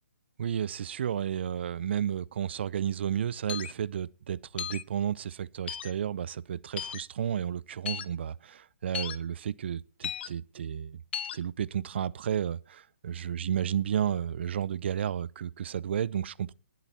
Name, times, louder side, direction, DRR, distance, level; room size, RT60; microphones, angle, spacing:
voice 1, 0.4-11.0 11.3-16.5, right 9 dB, 50° right, 0.6 m, -32 dB
sound 1, 3.5-3.7 4.6-4.8 5.7-5.9 6.8-7.0 7.9-8.1 8.9-9.2 10.0-10.3 11.1-11.4, left 9 dB, 50° left, 0.8 m, -35 dB
20.0 x 8.0 x 4.3 m
hypercardioid pair, 150°, 8 cm